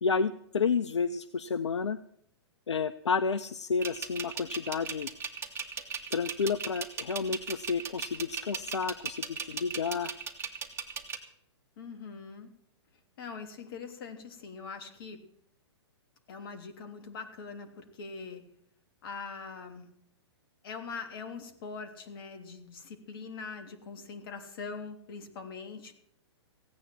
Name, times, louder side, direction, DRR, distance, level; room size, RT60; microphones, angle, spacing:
voice 1, 0.0-2.0 2.7-5.1 6.1-10.1, left 5 dB, 80° left, 14 dB, 0.7 m, -30 dB
sound 1, 3.8-11.2, right 7 dB, 15° right, 2.0 m, -37 dB
voice 2, 11.8-12.5 13.2-15.2 16.3-18.4 19.0-19.9 20.6-25.9, left 5 dB, 55° left, 7 dB, 3.2 m, -42 dB
16.5 x 9.4 x 7.5 m, 0.68 s
hypercardioid pair, 120°, 14 cm